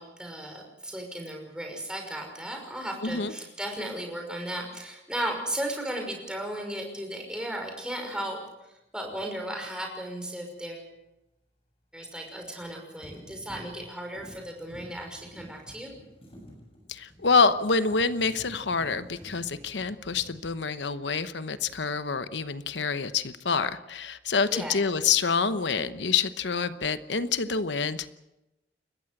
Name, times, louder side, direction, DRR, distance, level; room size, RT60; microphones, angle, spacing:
voice 1, 0.0-8.4 8.7-10.9 11.9-15.9 24.5-24.8, right 1 dB, 5° right, 2 dB, 5.8 m, -35 dB
voice 2, 3.0-3.3 16.9-28.1, left 5 dB, 80° left, 12 dB, 1.0 m, -27 dB
sound 1, 9.0-9.2 12.3-12.7 13.0-21.2 21.5-22.0, equal, 30° left, 7.5 m, -50 dB
30.0 x 15.0 x 7.8 m, 0.93 s
head